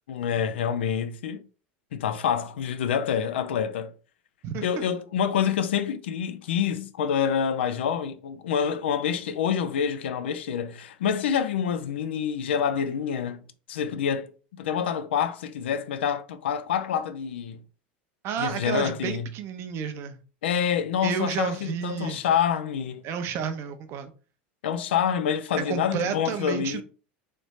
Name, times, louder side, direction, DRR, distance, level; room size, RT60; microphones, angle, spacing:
voice 1, 0.1-1.4 1.9-3.9 4.6-13.4 13.7-14.3 14.6-17.6 18.4-19.3 20.4-23.1 24.6-26.8, left 8 dB, 90° left, 0.4 m, -27 dB
voice 2, 4.4-4.9 18.2-20.2 21.0-22.2 23.0-24.1 25.7-26.8, right 7 dB, 50° right, 0.7 m, -31 dB
3.2 x 2.6 x 3.1 m
supercardioid pair, 110°, 6 cm